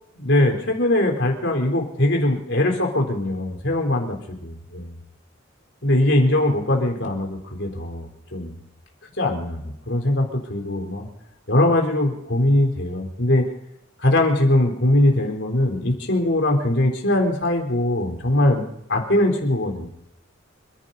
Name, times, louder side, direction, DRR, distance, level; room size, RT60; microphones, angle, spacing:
voice 1, 0.2-4.9 5.8-8.6 9.2-11.1 11.5-13.5 14.0-18.6 18.9-19.9, left 1 dB, 60° left, 2 dB, 3.8 m, -21 dB
29.5 x 11.0 x 4.0 m, 0.79 s
head